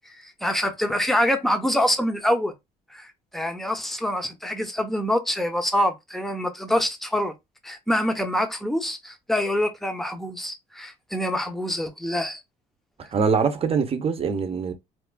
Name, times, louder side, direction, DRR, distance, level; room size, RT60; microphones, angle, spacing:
voice 1, 0.1-2.5 2.9-3.1 3.3-7.3 7.6-12.4, left 1 dB, ahead, 0.7 m, -25 dB
voice 2, 13.1-14.7, right 5 dB, 35° right, 0.8 m, -23 dB
4.3 x 2.4 x 2.2 m
cardioid pair, 110°, 17 cm